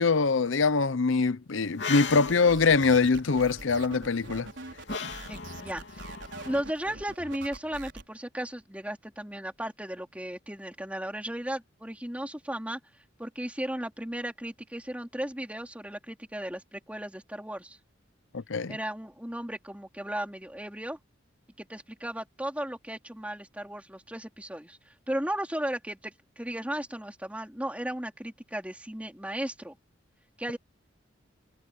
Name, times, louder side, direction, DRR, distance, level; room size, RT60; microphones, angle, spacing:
voice 1, 0.0-4.5 18.3-18.8, left 4 dB, 80° left, 0.7 m, -23 dB
sound 1, 1.6-6.6, left 5 dB, 65° left, 3.1 m, -39 dB
sound 2, 2.1-8.0, right 2 dB, 70° right, 4.5 m, -44 dB
voice 2, 5.3-6.1 6.5-12.8 13.2-17.8 18.7-21.0 21.6-29.8 30.4-30.6, right 1 dB, 5° right, 3.7 m, -35 dB
head